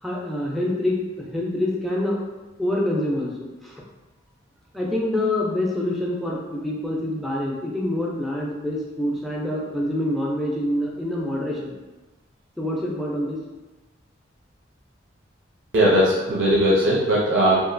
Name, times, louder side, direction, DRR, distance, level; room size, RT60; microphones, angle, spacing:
voice 1, 0.0-2.2 2.6-3.8 4.7-11.7 12.6-13.4, left 1 dB, ahead, -4 dB, 0.4 m, -26 dB
voice 2, 15.7-17.6, right 1 dB, 90° right, -6 dB, 0.5 m, -18 dB
2.9 x 2.4 x 2.5 m, 1.1 s
head